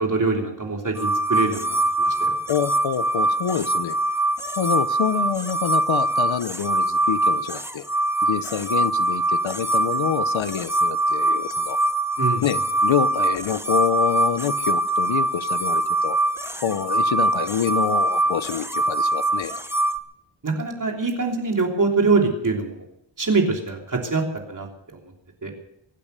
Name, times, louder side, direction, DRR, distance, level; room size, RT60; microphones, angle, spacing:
voice 1, 0.0-2.3 12.2-12.4 20.4-22.8 23.2-24.7 25.4-25.5, right 3 dB, 40° right, 1 dB, 3.1 m, -24 dB
sound 1, 1.0-20.0, right 2 dB, 5° right, 0.8 m, -23 dB
voice 2, 2.5-4.0 4.6-7.8 8.2-11.8 12.4-16.2 16.6-19.5, left 9 dB, 75° left, 13 dB, 1.0 m, -26 dB
23.5 x 8.9 x 6.7 m, 0.77 s
wide cardioid pair, 140°, 47 cm